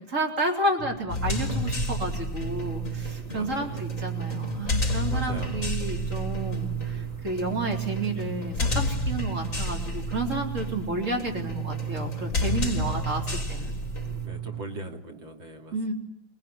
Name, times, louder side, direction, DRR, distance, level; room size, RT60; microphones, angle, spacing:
voice 1, 0.0-13.8 15.7-15.9, right 2 dB, 40° right, 3 dB, 4.2 m, -31 dB
sound 1, 0.8-14.6, right 10 dB, 10° right, 1.5 m, -35 dB
sound 2, 1.1-14.3, left 2 dB, 40° left, 4.2 m, -31 dB
voice 2, 3.2-3.8 5.1-5.7 12.7-13.4 14.2-15.9, right 1 dB, 75° right, 4 dB, 3.5 m, -41 dB
27.0 x 19.0 x 9.7 m, 0.74 s
omnidirectional pair, 2.1 m